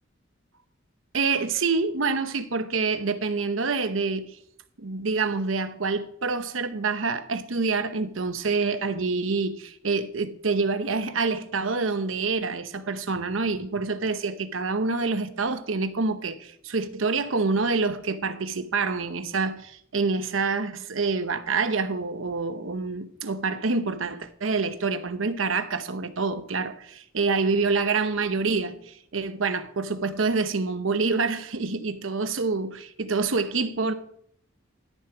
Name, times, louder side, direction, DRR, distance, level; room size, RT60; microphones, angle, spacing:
voice 1, 1.1-4.4 4.8-33.9, right 4 dB, 80° right, 0.9 m, -27 dB
13.0 x 7.0 x 4.9 m
head